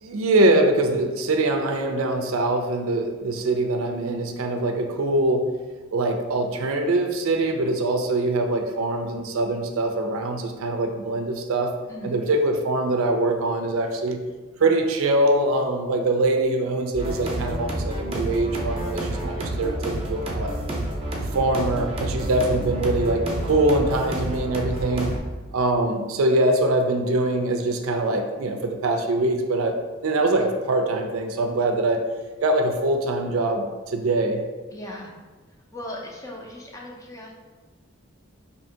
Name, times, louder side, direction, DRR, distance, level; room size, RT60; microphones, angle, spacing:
voice 1, 0.0-5.5 5.9-11.8 12.0-14.2 14.6-20.5 21.3-25.2 25.5-32.1 32.4-34.4, right 2 dB, 75° right, 4 dB, 0.4 m, -23 dB
voice 2, 11.9-12.2 34.7-35.1 35.7-37.3, left 1 dB, 15° left, -2 dB, 0.5 m, -37 dB
sound 1, 16.9-25.2, right 1 dB, 30° right, 0.6 m, -29 dB
2.8 x 2.6 x 4.4 m, 1.3 s
head